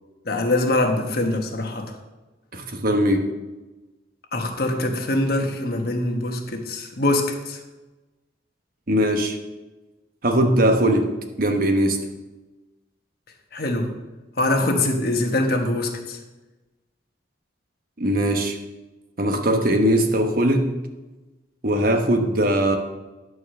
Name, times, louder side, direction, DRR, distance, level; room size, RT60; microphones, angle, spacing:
voice 1, 0.2-2.0 4.3-7.6 13.5-13.9 14.4-16.2, left 2 dB, 55° left, 3 dB, 1.3 m, -23 dB
voice 2, 2.5-3.3 8.9-9.4 10.2-12.1 18.0-18.6 19.2-20.7 21.6-22.8, right 1 dB, 50° right, 5 dB, 1.0 m, -20 dB
11.0 x 4.8 x 6.5 m, 1.1 s
head